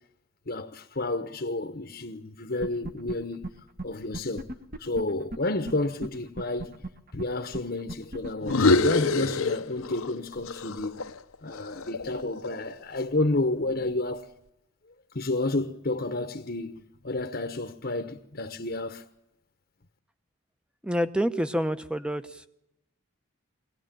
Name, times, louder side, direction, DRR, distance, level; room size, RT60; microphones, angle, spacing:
voice 1, 0.5-3.6 3.8-4.5 4.8-6.8 7.1-11.0 11.4-14.3 15.1-19.0, left 2 dB, 45° left, 1.0 m, -30 dB
sound 1, 2.6-3.1 3.4-3.5 3.8-3.9 4.1-5.7 6.0-6.1 6.4-9.3, right 1 dB, 45° right, 1.5 m, -36 dB
sound 2, 8.4-10.2 10.5-12.7, left 3 dB, 80° left, 0.9 m, -26 dB
voice 2, 20.8-22.4, equal, 5° right, 0.9 m, -27 dB
23.0 x 17.5 x 9.0 m
head